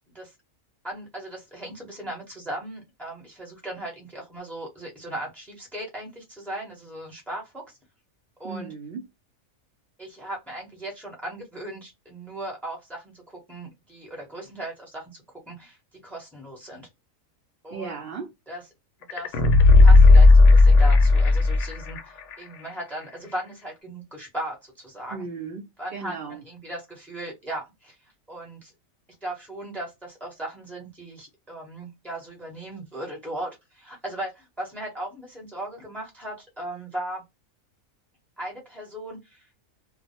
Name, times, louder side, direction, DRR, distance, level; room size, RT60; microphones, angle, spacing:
voice 1, 0.8-7.8 8.4-8.7 10.0-15.8 16.0-16.9 17.6-17.9 18.5-18.6 19.1-19.4 19.8-25.2 25.8-28.0 28.3-28.7 29.2-37.2 38.4-39.5, right 1 dB, ahead, 0.7 m, -37 dB
voice 2, 8.4-9.0 17.7-18.3 25.1-26.4, right 5 dB, 60° right, 0.6 m, -36 dB
sound 1, 19.1-22.0 22.3-22.4, left 3 dB, 70° left, 0.8 m, -13 dB
2.3 x 2.0 x 2.7 m
omnidirectional pair, 1.4 m